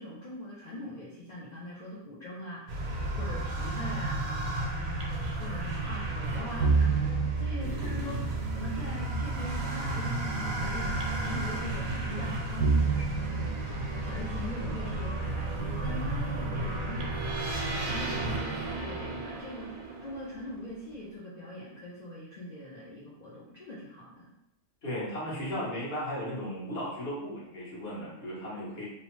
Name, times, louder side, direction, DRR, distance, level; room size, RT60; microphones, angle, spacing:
voice 1, 0.0-24.3, left 1 dB, 90° left, -6 dB, 0.3 m, -42 dB
sound 1, 2.7-20.6, right 3 dB, 90° right, 1.0 m, -31 dB
voice 2, 24.8-28.9, equal, 50° left, -6 dB, 1.1 m, -35 dB
2.8 x 2.0 x 3.0 m, 0.84 s
omnidirectional pair, 1.4 m